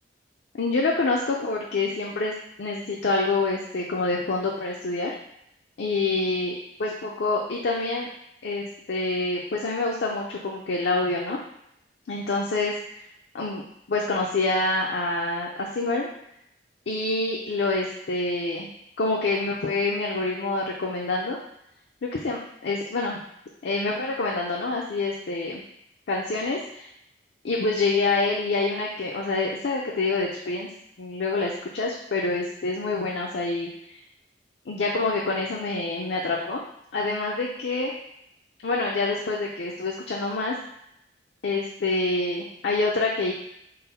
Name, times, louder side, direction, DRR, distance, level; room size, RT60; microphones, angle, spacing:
voice 1, 0.6-5.1 5.8-6.5 6.8-8.1 8.4-11.4 12.1-13.0 13.3-13.6 13.9-16.1 16.9-18.7 19.0-21.4 22.0-23.2 23.6-25.6 26.1-26.9 27.4-30.7 31.0-34.0 34.7-36.6 36.9-37.9 38.6-40.6 41.4-43.3, left 3 dB, 70° left, -2 dB, 0.5 m, -26 dB
3.9 x 2.1 x 4.1 m, 0.79 s
head